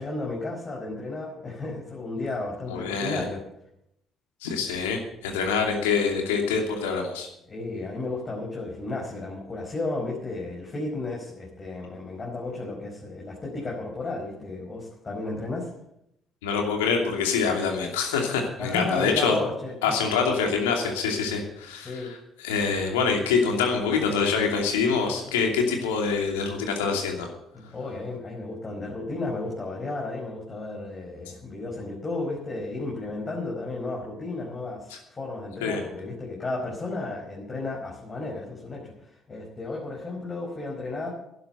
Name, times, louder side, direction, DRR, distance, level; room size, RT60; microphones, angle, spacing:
voice 1, 0.0-3.4 7.4-15.7 18.6-19.9 21.8-22.1 25.0-25.4 27.5-41.1, left 2 dB, 35° left, -3 dB, 5.0 m, -33 dB
voice 2, 2.7-3.2 4.4-7.3 16.4-19.4 19.8-27.3 35.6-35.8, left 5 dB, 85° left, 2 dB, 2.7 m, -25 dB
12.0 x 11.0 x 7.9 m, 0.78 s
hypercardioid pair, 50°, 0 cm